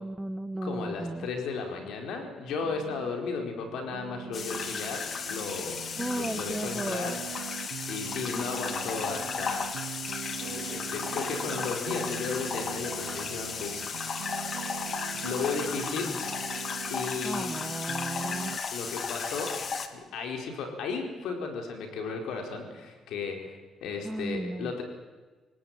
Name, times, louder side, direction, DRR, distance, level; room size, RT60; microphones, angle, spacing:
voice 1, 0.0-1.3 6.0-7.2 15.7-16.1 17.2-18.6 24.0-24.7, right 2 dB, 15° right, 11 dB, 1.0 m, -35 dB
voice 2, 0.6-5.8 6.1-7.2 7.9-9.6 10.4-14.6 15.1-16.1 16.9-17.5 18.7-19.6 19.9-24.8, left 5 dB, 85° left, 3 dB, 4.6 m, -35 dB
sound 1, 2.6-3.1 3.6-18.6, right 14 dB, 90° right, 0.7 m, -42 dB
sound 2, 4.3-19.9, left 5 dB, 50° left, 2.2 m, -35 dB
26.5 x 18.0 x 9.2 m, 1.3 s
cardioid pair, 90°, 0 cm